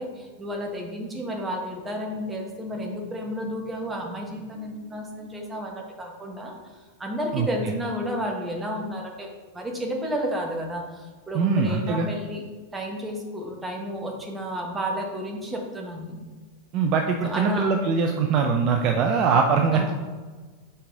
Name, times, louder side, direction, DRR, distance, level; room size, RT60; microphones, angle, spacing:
voice 1, 0.0-6.6 7.0-12.4 12.7-16.2 17.2-17.7 19.7-19.9, equal, 15° right, 1 dB, 1.1 m, -32 dB
voice 2, 11.3-12.1 16.7-19.9, right 5 dB, 40° right, 4 dB, 0.5 m, -22 dB
5.4 x 4.8 x 3.7 m, 1.4 s
figure-of-eight pair, 90°, 0 cm